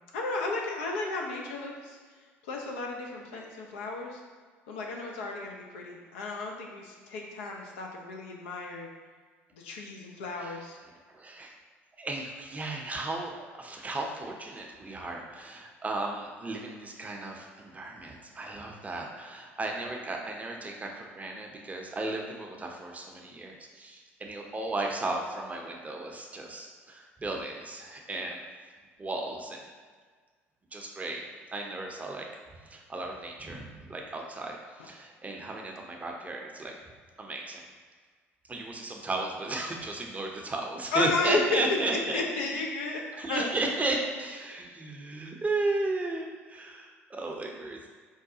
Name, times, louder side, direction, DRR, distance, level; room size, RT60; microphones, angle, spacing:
voice 1, 0.1-2.0 2.5-4.2 4.7-8.9 9.5-10.8 40.9-41.6 42.1-43.0 43.3-43.5, left 3 dB, 75° left, 0 dB, 0.5 m, -33 dB
voice 2, 11.1-11.5 12.0-28.4 29.0-29.7 30.7-31.2 31.5-32.3 32.7-34.6 34.8-36.7 37.2-37.6 38.5-42.3 43.2-47.9, right 2 dB, 20° right, 0 dB, 0.6 m, -34 dB
4.7 x 2.2 x 2.7 m, 1.6 s
figure-of-eight pair, 60°, 7 cm